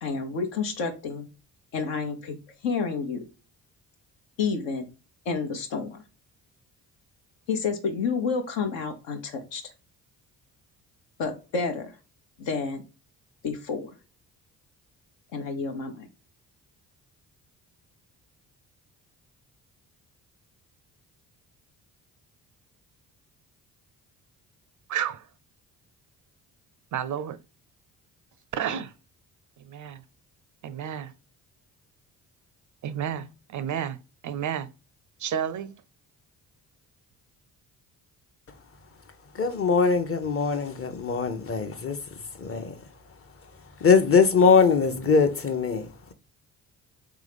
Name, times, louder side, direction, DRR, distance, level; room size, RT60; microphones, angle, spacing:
voice 1, 0.0-1.3 1.7-2.4 2.6-3.2 4.4-4.9 5.2-6.0 7.5-9.7 11.2-11.9 12.4-12.8 13.4-13.9 15.3-16.1, left 5 dB, 70° left, 1.0 m, -29 dB
voice 2, 24.9-25.3 26.9-27.4 28.5-28.9 29.6-30.0 30.6-31.1 32.8-34.7 35.2-35.8, right 9 dB, 45° right, 0.4 m, -31 dB
voice 3, 39.3-42.0 42.4-42.7 43.8-46.1, left 5 dB, 30° left, 0.8 m, -22 dB
3.6 x 3.4 x 3.4 m
hypercardioid pair, 45°, 47 cm